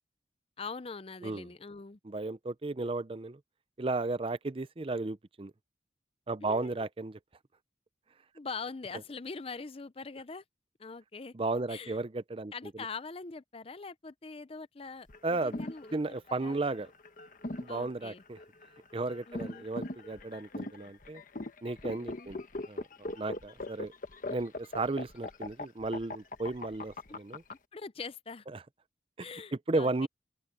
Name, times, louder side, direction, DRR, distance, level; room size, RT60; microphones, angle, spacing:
voice 1, 0.6-2.0 6.4-6.8 8.3-10.4 10.8-11.3 11.7-12.0 12.5-16.0 16.3-16.6 17.7-18.2 19.3-19.7 22.0-22.3 27.1-27.2 27.7-28.4 29.2-30.1, left 4 dB, 30° left, 0.6 m, -43 dB
voice 2, 2.0-3.4 3.8-5.5 6.3-7.2 11.3-12.9 15.2-15.6 15.9-16.9 17.5-18.4 18.9-21.2 21.6-22.4 22.7-22.8 23.1-23.9 24.3-27.4 28.5-28.6 29.2-29.3 29.7-30.1, right 2 dB, 30° right, 0.6 m, -34 dB
sound 1, 15.1-27.5, left 2 dB, 50° left, 1.2 m, -40 dB
open air
head